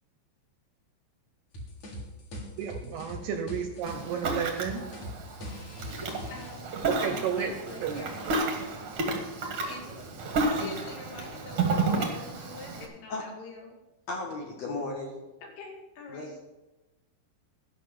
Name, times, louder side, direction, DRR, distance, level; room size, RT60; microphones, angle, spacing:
sound 1, 1.5-6.5, equal, 45° left, 3.0 m, -41 dB
voice 1, 2.6-4.8 7.0-7.5 7.8-8.0, right 7 dB, 80° right, 6 dB, 2.4 m, -32 dB
Ocean, 3.8-12.8, right 3 dB, 60° right, 1.4 m, -32 dB
voice 2, 6.3-6.6 7.0-8.3 9.6-10.1 10.4-13.7 15.4-16.4, left 3 dB, 90° left, 1 dB, 4.9 m, -45 dB
voice 3, 14.1-15.1 16.1-16.4, left 3 dB, 65° left, 1 dB, 1.7 m, -35 dB
13.5 x 5.9 x 8.5 m, 1.0 s
omnidirectional pair, 5.5 m